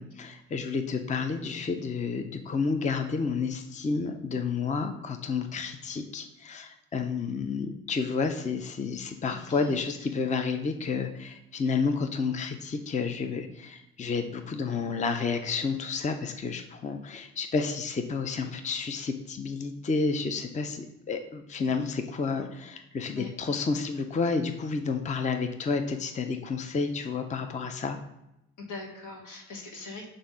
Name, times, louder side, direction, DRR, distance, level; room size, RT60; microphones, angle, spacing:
voice 1, 0.0-28.0, left 4 dB, 25° left, 7 dB, 0.5 m, -30 dB
voice 2, 9.3-10.1 23.1-23.3 28.6-30.1, left 3 dB, 80° left, 2 dB, 1.4 m, -42 dB
7.0 x 2.6 x 5.5 m, 0.88 s
cardioid pair, 90°, 30 cm